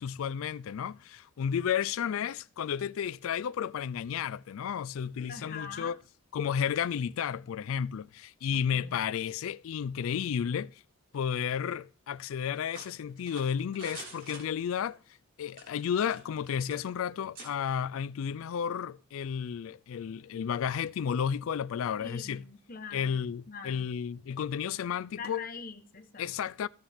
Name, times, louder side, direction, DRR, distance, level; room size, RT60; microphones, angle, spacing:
voice 1, 0.0-6.0 6.3-10.8 11.1-15.0 15.4-22.4 22.9-25.4 26.2-26.7, left 8 dB, 70° left, 0.3 m, -32 dB
voice 2, 5.3-6.0 8.5-9.0 22.0-23.9 25.2-26.3, left 5 dB, 40° left, 1.0 m, -44 dB
sound 1, 12.7-15.0 15.5-16.4 16.7-16.8 17.3-17.5, right 2 dB, 40° right, 3.2 m, -47 dB
15.5 x 5.5 x 3.5 m
head